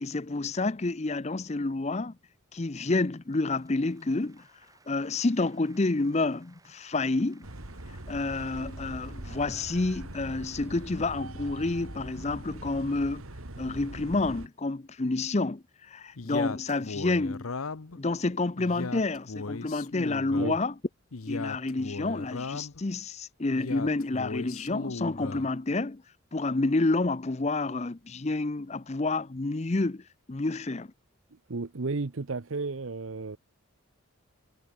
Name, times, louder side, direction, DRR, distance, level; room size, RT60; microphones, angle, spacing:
voice 1, 0.0-2.1 2.5-4.4 4.9-7.4 8.1-13.2 13.6-17.5 18.0-20.7 21.3-26.0 26.3-30.0 30.3-30.9, left 2 dB, 30° left, 0.6 m, -29 dB
Applause, 3.1-10.5, right 3 dB, 15° right, 5.9 m, -62 dB
sound 1, 7.4-14.5, right 1 dB, 90° right, 2.8 m, -42 dB
Male speech man speaking, 16.2-18.0 18.6-20.5 21.1-22.8 23.5-25.5, left 4 dB, 85° left, 0.9 m, -37 dB
voice 2, 31.5-33.4, right 3 dB, 70° right, 0.8 m, -33 dB
head